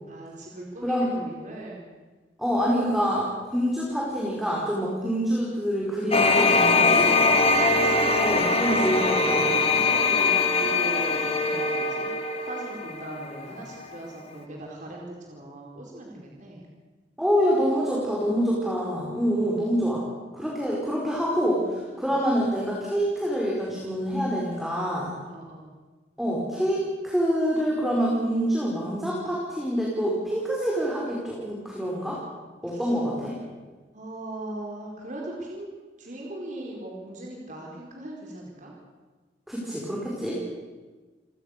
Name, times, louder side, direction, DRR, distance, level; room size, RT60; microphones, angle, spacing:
voice 1, 0.1-1.8 8.3-12.1 12.4-16.7 19.2-19.7 21.9-22.1 25.3-25.7 32.7-32.9 33.9-38.7 40.2-40.5, right 1 dB, 45° right, -2 dB, 4.8 m, -39 dB
voice 2, 2.4-7.1 8.2-9.4 17.2-20.0 20.3-25.1 26.2-32.2 32.6-33.4 39.5-40.4, equal, ahead, -4 dB, 5.0 m, -26 dB
sound 1, 6.1-13.7, left 3 dB, 35° left, 2.1 m, -22 dB
29.0 x 18.5 x 6.8 m, 1.3 s
head